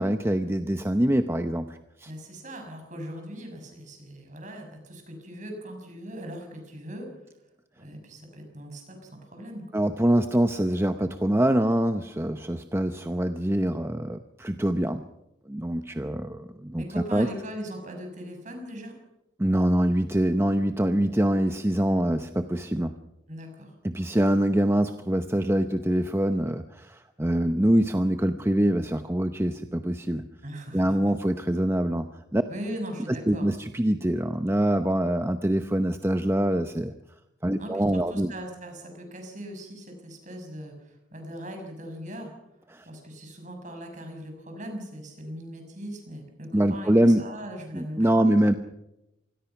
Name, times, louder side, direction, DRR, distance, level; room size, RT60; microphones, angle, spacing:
voice 1, 0.0-2.1 9.7-15.0 15.5-17.3 19.4-23.0 23.8-30.2 30.7-32.4 33.1-36.9 37.4-38.3 42.7-42.9 46.5-47.2 47.7-48.5, right 1 dB, 15° right, 8 dB, 0.7 m, -24 dB
voice 2, 2.0-7.1 7.8-9.6 16.7-18.9 23.3-23.7 30.4-31.1 32.5-33.5 37.6-42.3 42.8-48.4, equal, 40° right, 4 dB, 6.7 m, -39 dB
26.5 x 20.5 x 5.9 m, 0.91 s
head